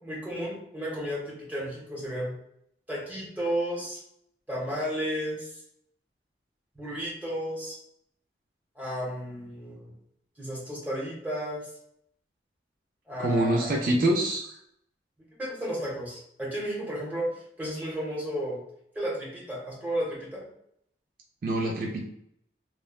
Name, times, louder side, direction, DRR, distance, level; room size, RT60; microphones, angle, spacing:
voice 1, 0.0-2.3 2.9-4.0 4.5-5.5 6.8-7.8 8.8-9.9 10.4-11.6 13.1-13.8 15.4-18.6 18.9-20.4, equal, 10° right, -5 dB, 0.8 m, -33 dB
voice 2, 13.2-14.5 21.4-22.0, right 1 dB, 50° right, 0 dB, 0.4 m, -25 dB
3.0 x 2.1 x 2.3 m, 0.73 s
head